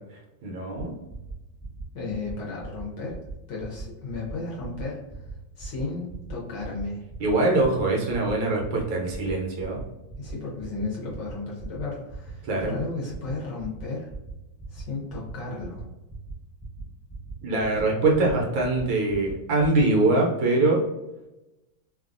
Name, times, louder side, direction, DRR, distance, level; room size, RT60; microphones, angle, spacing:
voice 1, 0.4-0.9 7.2-9.8 12.4-12.7 17.4-20.8, right 2 dB, 75° right, -1 dB, 1.3 m, -23 dB
sound 1, 0.8-0.9 1.1-1.3 1.6-1.8 2.1-2.3 2.6-2.8 3.1-3.3 3.6-3.8 4.1-4.3 4.6-4.8 5.1-5.3 5.6-5.8 6.1-6.3 6.6-6.8 7.1-7.3 7.6-7.8 8.1-8.3 8.6-8.8 9.1-9.3 9.6-9.8 10.1-10.3 10.6-10.8 11.1-11.3 11.6-11.8 12.1-12.3 12.6-12.8 13.1-13.3 13.6-13.8 14.1-14.3 14.6-14.8 15.1-15.3 15.6-15.8 16.1-16.3 16.6-16.8 17.1-17.3 17.6-17.8 18.1-18.3 18.6-18.8 19.1-19.3 19.6-19.8, right 4 dB, 35° left, 0.3 m, -40 dB
voice 2, 1.9-3.2 3.5-5.0 5.6-7.0 10.2-14.1 14.7-15.9, left 3 dB, 70° left, -3 dB, 1.1 m, -34 dB
3.3 x 2.3 x 2.4 m, 0.97 s
omnidirectional pair, 2.3 m